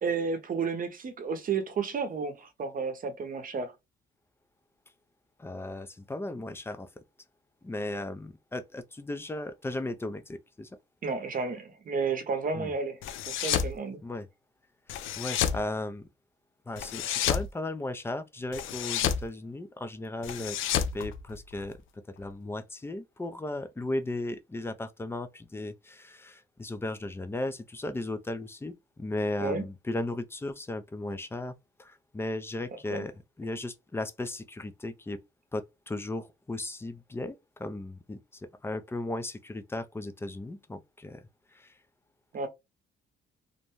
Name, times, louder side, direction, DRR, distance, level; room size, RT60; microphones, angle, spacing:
voice 1, 0.0-3.7 11.0-13.0 13.3-14.0 29.4-29.6 32.9-33.0 42.3-42.5, right 5 dB, 45° right, 0.7 m, -32 dB
voice 2, 5.4-6.9 7.6-10.7 12.5-12.7 14.0-14.3 14.9-16.1 16.7-21.8 22.2-31.5 31.8-33.1 33.4-35.2 35.5-41.2 41.5-41.7, left 2 dB, 10° left, 0.4 m, -36 dB
sound 1, 13.0-13.7 14.9-15.6 16.8-17.5 18.5-19.3 20.2-21.7, left 9 dB, 85° left, 0.4 m, -30 dB
2.6 x 2.1 x 3.0 m
cardioid pair, 90°, 20 cm